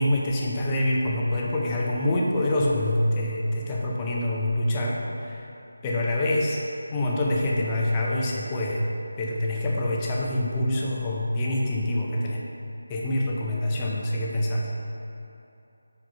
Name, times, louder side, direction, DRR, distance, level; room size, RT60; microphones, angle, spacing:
voice 1, 0.0-5.5 5.8-6.6 6.9-8.8 9.2-12.4 12.9-14.7, left 1 dB, 15° left, -3 dB, 0.7 m, -25 dB
5.3 x 5.1 x 5.4 m, 2.8 s
figure-of-eight pair, 165°, 0 cm